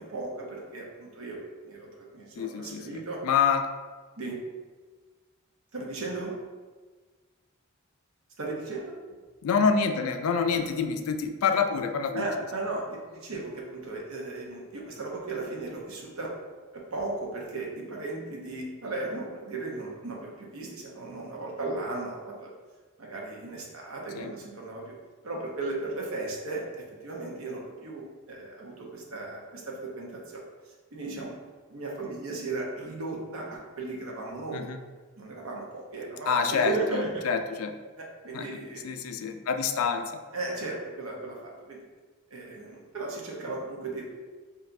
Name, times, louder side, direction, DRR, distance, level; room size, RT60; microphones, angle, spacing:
voice 1, 0.0-1.4 1.6-3.2 4.2-4.4 5.7-6.4 8.4-9.0 10.6-10.7 12.1-16.3 16.7-22.5 23.0-25.0 25.2-31.4 31.7-34.6 35.2-37.3 38.0-38.8 40.3-41.8 42.3-44.1, right 2 dB, 80° right, -1 dB, 0.9 m, -36 dB
voice 2, 2.4-3.7 9.4-12.3 24.2-24.3 34.5-34.8 36.3-37.7 38.3-38.5 38.8-40.2, left 6 dB, 90° left, 7 dB, 0.3 m, -27 dB
5.2 x 2.6 x 2.6 m, 1.4 s
head